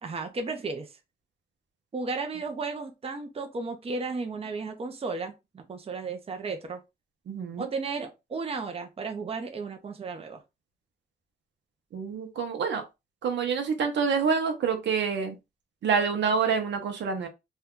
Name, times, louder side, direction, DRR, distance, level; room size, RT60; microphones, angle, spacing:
voice 1, 0.0-0.9 1.9-6.8 7.6-10.4, right 4 dB, 35° right, 0.6 m, -34 dB
voice 2, 7.3-7.7 11.9-12.8 13.2-15.4 15.8-17.3, right 6 dB, 85° right, 0.8 m, -27 dB
2.7 x 2.3 x 3.6 m
cardioid pair, 95°, 18 cm